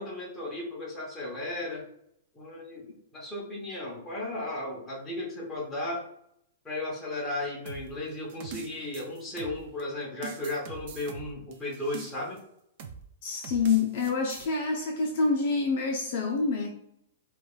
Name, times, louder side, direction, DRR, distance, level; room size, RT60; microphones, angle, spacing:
voice 1, 0.0-1.9 2.3-6.0 6.6-12.4, left 2 dB, 10° left, -5 dB, 0.8 m, -35 dB
sound 1, 7.7-9.8 10.2-12.4 12.8-13.0 13.4-14.5, right 5 dB, 35° right, 0.4 m, -43 dB
voice 2, 13.2-16.7, left 4 dB, 40° left, 1 dB, 0.4 m, -27 dB
4.6 x 2.2 x 2.3 m, 0.73 s
hypercardioid pair, 175°, 0 cm